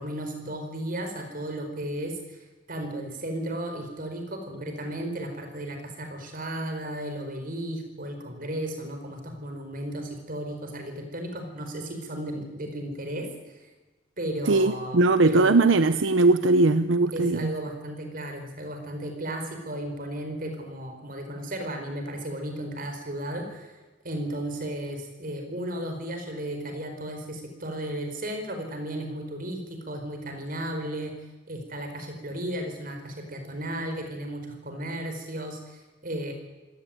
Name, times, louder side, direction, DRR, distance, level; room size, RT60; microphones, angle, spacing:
voice 1, 0.0-13.3 13.5-13.7 14.2-15.5 17.1-23.8 24.0-31.2 31.5-36.3, right 1 dB, 45° right, 5 dB, 5.0 m, -34 dB
voice 2, 14.5-17.5, right 3 dB, 80° right, 12 dB, 0.8 m, -20 dB
25.5 x 17.5 x 9.2 m, 1.2 s
head